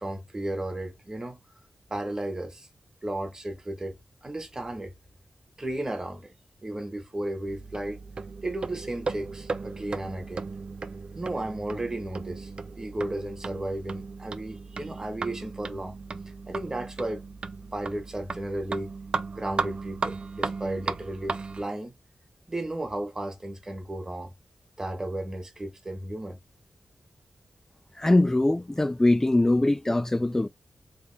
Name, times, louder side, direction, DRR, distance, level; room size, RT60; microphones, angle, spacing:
voice 1, 0.0-1.4 1.9-2.7 3.0-4.9 5.6-6.3 6.6-8.0 8.4-10.5 11.1-12.5 12.7-16.0 16.5-17.2 17.7-18.9 19.3-21.9 22.5-24.3 24.8-26.4, right 1 dB, 30° right, 1.6 m, -34 dB
sound 1, 7.5-21.6, right 4 dB, 55° right, 0.5 m, -36 dB
voice 2, 28.0-30.5, left 2 dB, 20° left, 0.5 m, -22 dB
3.5 x 2.5 x 3.5 m
cardioid pair, 45°, 2 cm